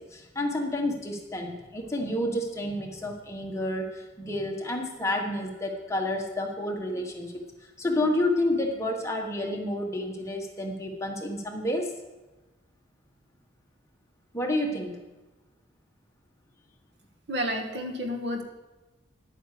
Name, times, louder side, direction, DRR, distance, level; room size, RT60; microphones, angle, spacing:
voice 1, 0.0-11.9 14.3-15.0, left 1 dB, 15° left, 1 dB, 1.3 m, -30 dB
voice 2, 17.3-18.4, equal, 60° right, 4 dB, 1.6 m, -30 dB
10.5 x 9.0 x 6.6 m, 1.1 s
head